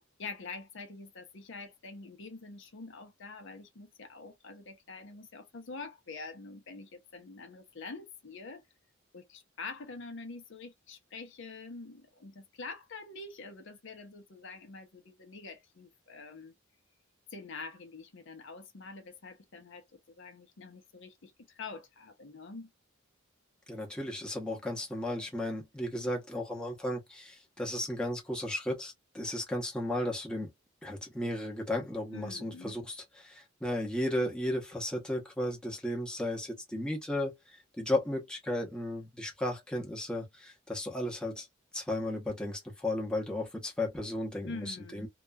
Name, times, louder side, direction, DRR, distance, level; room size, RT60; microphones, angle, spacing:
voice 1, 0.0-8.6 9.1-16.5 17.3-22.7 32.1-32.8 44.4-45.1, left 3 dB, 65° left, 0.7 m, -46 dB
voice 2, 23.7-30.5 30.8-41.5 41.7-45.1, left 1 dB, 5° left, 0.8 m, -34 dB
2.9 x 2.3 x 2.2 m
head